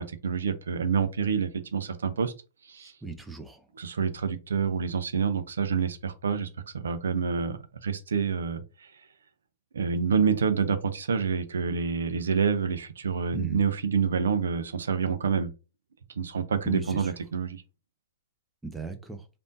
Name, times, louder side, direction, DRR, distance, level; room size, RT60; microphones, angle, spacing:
voice 1, 0.0-2.3 2.7-2.9 3.7-6.5 6.7-8.9 9.7-15.5 16.2-17.6, right 6 dB, 80° right, 0.5 m, -27 dB
voice 2, 2.8-3.6 13.3-13.6 16.6-17.1 18.6-19.2, right 2 dB, 5° right, 0.6 m, -37 dB
3.4 x 2.5 x 2.6 m
hypercardioid pair, 115°, 0 cm